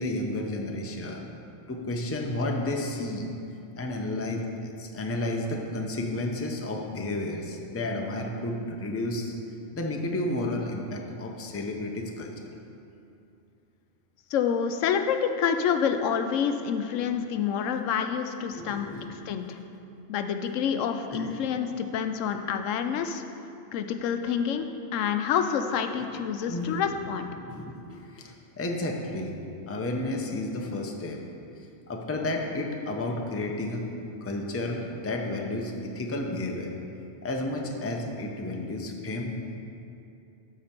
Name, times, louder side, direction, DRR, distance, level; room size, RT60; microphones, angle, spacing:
voice 1, 0.0-1.3 1.7-3.3 3.8-9.3 9.7-12.3 17.0-17.1 18.5-19.1 21.1-21.3 26.1-26.8 27.4-29.3 29.7-31.2 31.6-36.8 37.2-39.6, left 1 dB, 15° left, 1 dB, 0.5 m, -32 dB
voice 2, 14.3-19.6 20.1-23.2 23.7-24.7 24.9-27.3, left 7 dB, 90° left, 7 dB, 1.0 m, -28 dB
12.5 x 5.0 x 4.4 m, 2.7 s
omnidirectional pair, 1.3 m